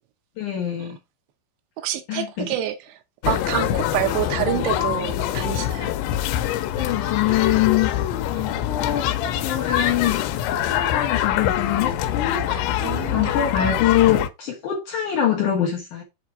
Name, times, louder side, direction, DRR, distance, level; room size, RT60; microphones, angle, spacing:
voice 1, 0.4-1.0 2.1-2.5 6.7-7.9 8.3-9.1 9.4-10.3 10.6-12.8 13.1-16.0, left 11 dB, 65° left, 2.1 m, -24 dB
voice 2, 1.8-5.9 12.5-13.4, right 12 dB, 80° right, 2.9 m, -28 dB
sound 1, 3.2-14.3, left 12 dB, 90° left, 2.9 m, -24 dB
7.4 x 3.9 x 4.6 m
omnidirectional pair, 5.1 m